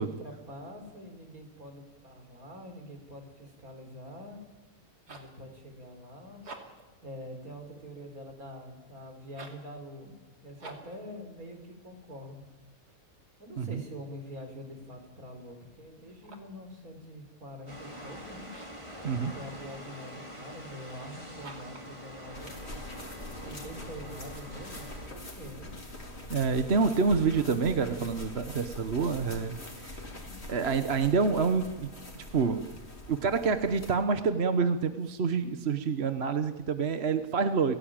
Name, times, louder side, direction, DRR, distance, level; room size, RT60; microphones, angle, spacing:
voice 1, 0.0-4.4 5.1-6.4 7.0-10.2 10.4-12.5 13.4-18.5 19.1-22.6 23.4-25.7 27.8-28.0 30.1-30.5, equal, 65° right, 5 dB, 4.8 m, -45 dB
sound 1, 4.8-5.4 6.3-6.9 9.3-9.7 10.6-11.0 16.0-16.6 18.4-18.9 21.4-21.9, right 3 dB, 90° right, 3.3 m, -48 dB
sound 2, 17.7-25.1, equal, 20° right, 3.5 m, -45 dB
sound 3, 22.3-33.9, left 1 dB, 40° left, 4.1 m, -44 dB
voice 2, 26.3-29.9 30.5-31.9 32.3-32.6 33.1-37.8, right 5 dB, 45° right, 9 dB, 1.3 m, -27 dB
29.5 x 16.5 x 8.9 m, 1.3 s
omnidirectional pair, 1.6 m